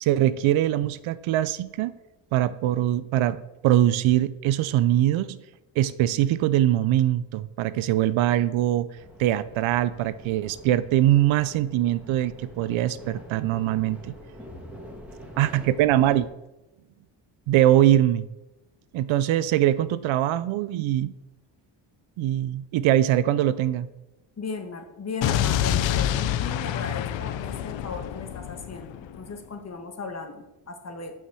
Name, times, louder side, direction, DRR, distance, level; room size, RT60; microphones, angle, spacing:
voice 1, 0.0-1.9 2.3-5.4 5.8-8.9 9.2-14.1 15.4-16.3 17.5-18.3 18.9-21.1 22.2-23.9, right 13 dB, 75° right, 16 dB, 0.6 m, -22 dB
sound 1, 9.0-16.3, equal, 5° right, 1.9 m, -45 dB
voice 2, 24.4-31.1, left 4 dB, 30° left, 4 dB, 1.6 m, -36 dB
Explosion, 25.2-29.3, left 10 dB, 65° left, 0.7 m, -27 dB
7.1 x 5.8 x 6.2 m, 0.98 s
cardioid pair, 100°, 48 cm